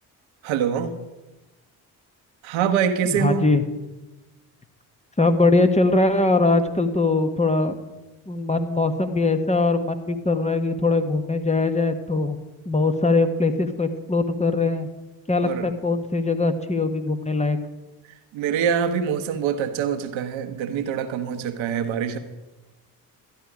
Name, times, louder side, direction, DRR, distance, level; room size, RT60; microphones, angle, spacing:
voice 1, 0.4-0.9 2.4-3.4 15.4-15.7 18.3-22.2, right 8 dB, 65° right, 8 dB, 1.2 m, -24 dB
voice 2, 3.0-3.6 5.2-7.8 8.3-12.4 12.6-14.9 15.3-17.6, left 3 dB, 15° left, 7 dB, 1.3 m, -21 dB
13.0 x 10.5 x 4.9 m, 1.1 s
hypercardioid pair, 45°, 50 cm